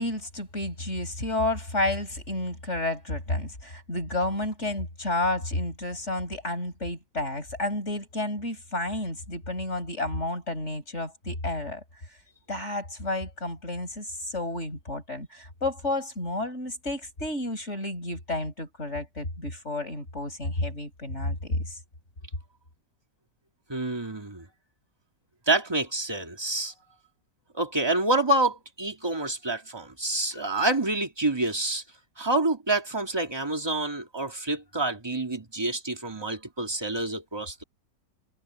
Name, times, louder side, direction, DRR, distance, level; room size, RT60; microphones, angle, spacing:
voice 1, 0.0-11.8 12.5-21.8, left 2 dB, 40° left, 7.2 m, -31 dB
voice 2, 23.7-24.5 25.5-26.7 27.5-31.8 32.2-37.6, right 2 dB, 15° right, 2.3 m, -27 dB
omnidirectional pair, 1.9 m